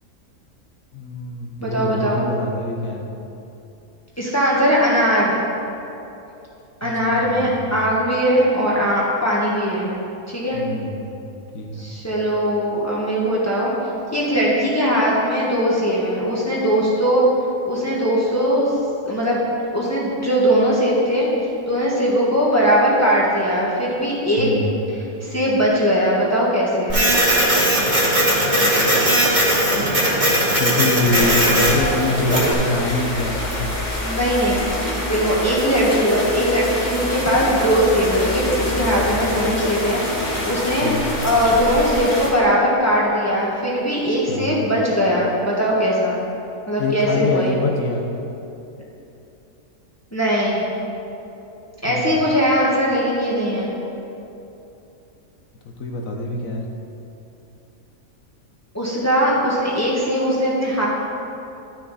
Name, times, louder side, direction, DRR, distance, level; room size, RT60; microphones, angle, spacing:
voice 1, 0.9-3.1 6.8-7.7 10.5-11.1 11.5-11.8 24.4-24.7 30.6-33.8 39.2-39.5 40.8-41.2 44.3-44.7 46.8-48.0 51.9-52.2 55.6-56.7, left 2 dB, 70° left, 1 dB, 1.2 m, -25 dB
voice 2, 1.6-2.2 4.2-5.3 6.8-9.9 10.3-10.6 11.8-13.7 14.1-17.2 17.6-18.7 19.1-19.4 19.7-21.3 21.7-24.7 25.2-27.0 34.0-34.6 35.1-40.9 41.2-46.2 46.7-47.6 50.1-50.6 51.8-53.7 58.7-60.9, equal, 10° left, -6 dB, 1.3 m, -20 dB
Printer, 26.9-32.5, right 1 dB, 30° right, 2.0 m, -18 dB
sound 1, 31.1-42.3, left 1 dB, 35° left, 1.5 m, -26 dB
12.0 x 6.3 x 4.1 m, 2.9 s
omnidirectional pair, 1.5 m